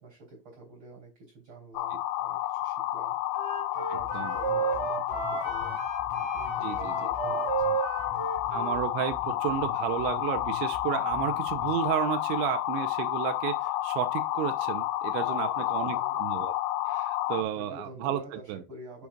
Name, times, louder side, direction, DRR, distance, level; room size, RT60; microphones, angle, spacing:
voice 1, 0.0-3.2 3.7-5.9 6.3-7.5 15.2-16.2 17.4-19.1, right 2 dB, 30° right, 3.5 m, -47 dB
sound 1, 1.8-17.4, left 14 dB, 80° left, 3.0 m, -30 dB
Wind instrument woodwind instrument, 3.3-8.8, right 7 dB, 50° right, 2.2 m, -33 dB
sound 2, 4.0-12.0, left 5 dB, 50° left, 2.9 m, -46 dB
voice 2, 6.6-6.9 8.5-16.5 16.9-18.6, right 11 dB, 85° right, 2.9 m, -32 dB
8.4 x 7.9 x 2.4 m
omnidirectional pair, 5.7 m